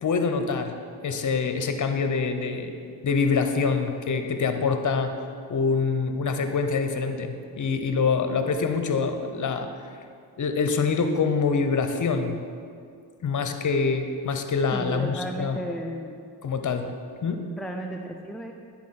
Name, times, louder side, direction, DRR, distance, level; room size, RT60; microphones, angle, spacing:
voice 1, 0.0-0.7 1.0-2.7 3.0-5.1 5.5-9.7 10.4-12.4 13.2-15.6 16.4-16.9 17.2-17.4, left 5 dB, 45° left, 7 dB, 0.7 m, -25 dB
voice 2, 14.7-16.2 17.5-18.5, right 1 dB, ahead, 1 dB, 0.3 m, -34 dB
9.6 x 4.2 x 4.1 m, 2.3 s
cardioid pair, 65°, 44 cm